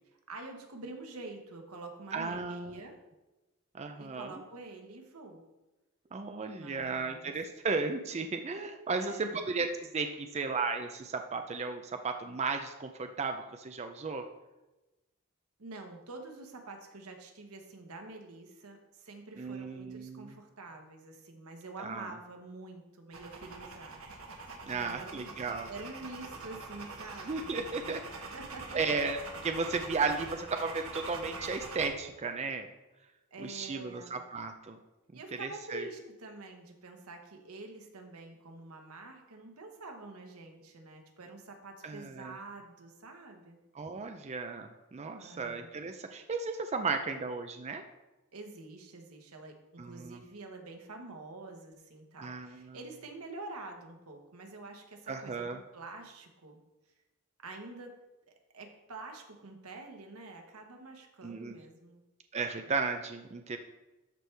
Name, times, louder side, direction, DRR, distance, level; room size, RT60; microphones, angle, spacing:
voice 1, 0.3-3.0 4.0-5.4 6.5-7.3 9.0-9.5 15.6-24.0 24.6-25.3 25.7-28.0 28.3-28.8 33.3-34.2 35.1-43.6 45.2-45.7 48.3-56.6 57.4-57.9 58.5-62.0, right 2 dB, 85° right, 3 dB, 1.3 m, -47 dB
voice 2, 2.1-2.8 3.7-4.3 6.1-14.3 19.4-20.4 21.8-22.1 24.7-25.7 27.3-28.3 28.7-32.7 33.4-34.8 35.4-35.9 41.8-42.3 43.7-47.8 49.8-50.2 52.2-52.8 55.1-55.6 61.2-61.6 62.3-63.6, right 4 dB, 30° right, 6 dB, 0.4 m, -35 dB
sound 1, 23.1-31.9, right 3 dB, 70° right, 1.3 m, -44 dB
12.5 x 4.6 x 3.4 m, 1.1 s
head